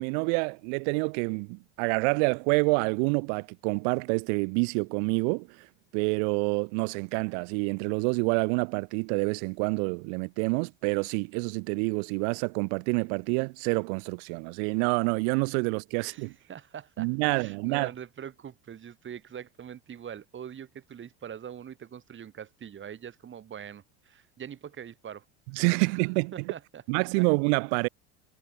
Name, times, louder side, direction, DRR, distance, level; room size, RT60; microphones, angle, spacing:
voice 1, 0.0-5.5 5.9-16.3 17.0-17.9 25.5-26.3 26.9-27.9, right 40 dB or more, 70° right, 0.7 m, -27 dB
voice 2, 15.9-25.2 25.8-26.0 26.3-27.3, right 8 dB, 35° right, 6.3 m, -43 dB
supercardioid pair, 105°, 34 cm